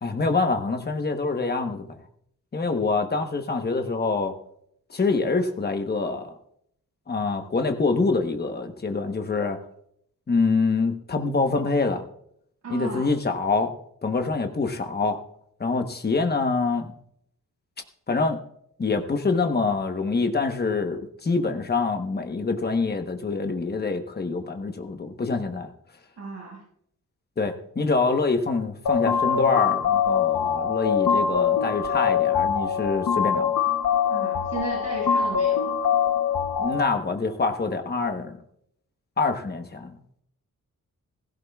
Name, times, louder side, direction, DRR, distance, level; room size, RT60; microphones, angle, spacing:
voice 1, 0.0-2.0 2.5-4.3 4.9-6.3 7.1-9.6 10.3-12.0 12.7-13.7 14.0-15.2 15.6-16.9 18.1-18.4 18.8-25.7 27.4-33.5 36.6-38.4 39.2-40.2, left 4 dB, 30° left, 5 dB, 1.1 m, -25 dB
voice 2, 12.6-13.1 26.2-26.6 34.1-35.7, right 3 dB, 55° right, -5 dB, 6.1 m, -35 dB
sound 1, 28.9-36.9, left 7 dB, 85° left, 1.0 m, -23 dB
16.5 x 15.5 x 2.4 m, 0.71 s
wide cardioid pair, 165°, 32 cm